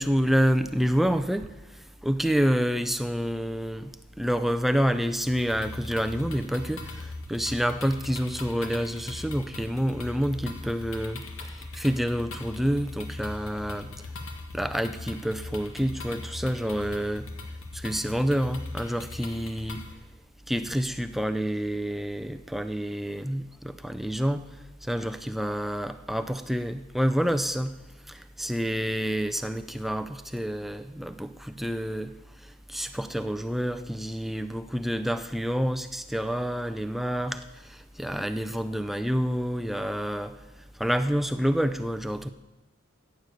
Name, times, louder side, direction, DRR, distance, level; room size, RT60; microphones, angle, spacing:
voice 1, 0.0-1.5 2.0-11.2 11.7-13.9 14.5-17.3 17.7-19.8 20.5-24.4 24.8-27.7 28.1-32.1 32.7-40.3 40.8-42.3, equal, ahead, 8 dB, 0.4 m, -28 dB
sound 1, 5.3-19.9, left 2 dB, 75° left, 1.5 m, -40 dB
14.5 x 9.1 x 6.7 m, 1.1 s
head